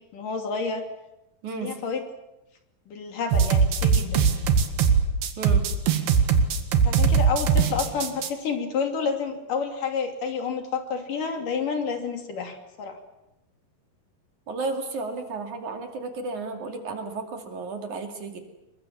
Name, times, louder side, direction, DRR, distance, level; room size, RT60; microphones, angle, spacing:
voice 1, 0.1-0.8 1.6-2.0 2.9-4.2 6.9-13.0, left 5 dB, 60° left, 5 dB, 4.3 m, -29 dB
voice 2, 1.4-1.8 5.4-5.7 14.5-18.4, right 3 dB, 55° right, 5 dB, 3.7 m, -33 dB
sound 1, 3.3-8.3, right 6 dB, 90° right, 3.9 m, -20 dB
28.0 x 23.5 x 7.2 m, 0.92 s
omnidirectional pair, 4.5 m